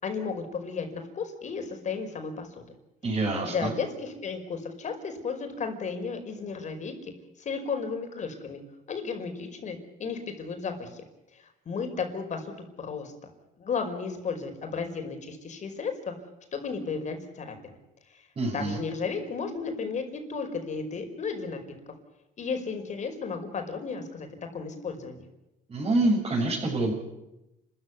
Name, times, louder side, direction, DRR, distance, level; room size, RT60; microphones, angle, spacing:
voice 1, 0.0-2.7 3.4-7.1 7.4-8.6 8.9-11.0 11.3-13.1 13.6-16.1 16.5-17.6 18.5-21.6 22.4-24.3 24.5-25.3, left 5 dB, 45° left, 6 dB, 5.4 m, -34 dB
voice 2, 3.0-3.7 18.4-18.7 25.7-26.9, right 2 dB, 30° right, -5 dB, 6.8 m, -26 dB
30.0 x 14.5 x 9.7 m, 0.93 s
cardioid pair, 110°, 17 cm